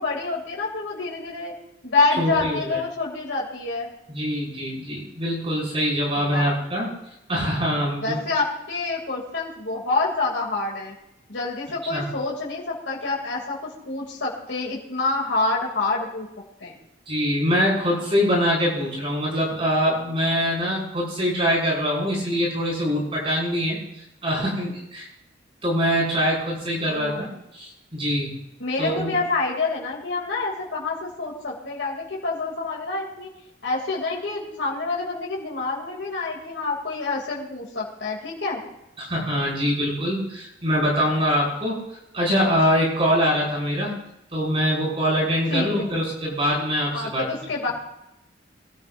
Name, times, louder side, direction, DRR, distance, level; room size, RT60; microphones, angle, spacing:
voice 1, 0.0-1.5 1.8-3.9 6.3-6.5 8.0-10.9 11.3-16.3 16.6-16.7 26.9-27.3 28.6-33.3 33.6-38.6 45.5-45.9 46.9-47.7, left 3 dB, 75° left, -3 dB, 2.9 m, -27 dB
voice 2, 2.2-2.8 4.1-6.9 7.3-8.2 11.9-12.1 17.1-23.8 24.2-25.1 25.6-27.3 27.5-28.3 28.8-29.2 39.0-41.8 42.1-44.0 44.3-47.2, equal, 30° right, -6 dB, 6.2 m, -23 dB
23.0 x 13.0 x 2.7 m, 0.86 s
head